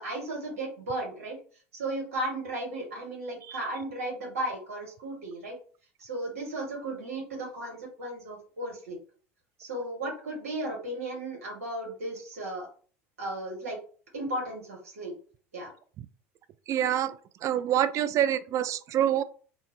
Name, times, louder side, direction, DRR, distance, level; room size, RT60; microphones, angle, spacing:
voice 1, 0.0-1.4 1.7-5.6 6.0-9.0 9.6-12.7 13.2-13.8 14.1-15.1 15.5-15.7, right 1 dB, 85° right, 1 dB, 1.2 m, -35 dB
voice 2, 16.7-17.2 17.4-19.2, right 10 dB, 45° right, 14 dB, 0.3 m, -26 dB
3.4 x 2.1 x 3.0 m, 0.42 s
hypercardioid pair, 80°, 8 cm